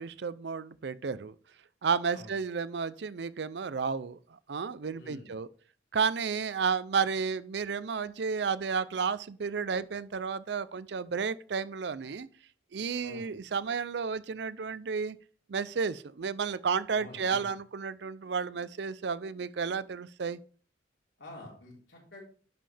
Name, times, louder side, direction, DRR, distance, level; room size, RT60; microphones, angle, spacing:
voice 1, 0.0-1.4 1.8-5.5 5.9-12.3 12.7-15.2 15.5-20.4, right 5 dB, 65° right, 0.5 m, -32 dB
voice 2, 4.9-5.3 13.0-13.3 16.9-17.5 21.2-22.2, left 2 dB, 80° left, 3.9 m, -47 dB
10.5 x 5.6 x 3.3 m
head